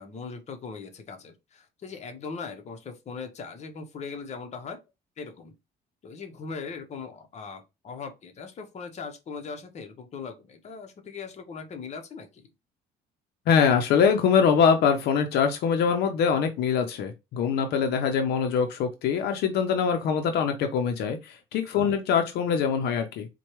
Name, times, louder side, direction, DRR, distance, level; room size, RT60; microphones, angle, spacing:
voice 1, 0.0-4.8 5.2-5.5 6.0-12.5 21.7-22.0, left 5 dB, 40° left, 0.8 m, -39 dB
voice 2, 13.5-23.3, left 6 dB, 75° left, 0.6 m, -23 dB
4.3 x 2.2 x 3.0 m
cardioid pair, 110°, 17 cm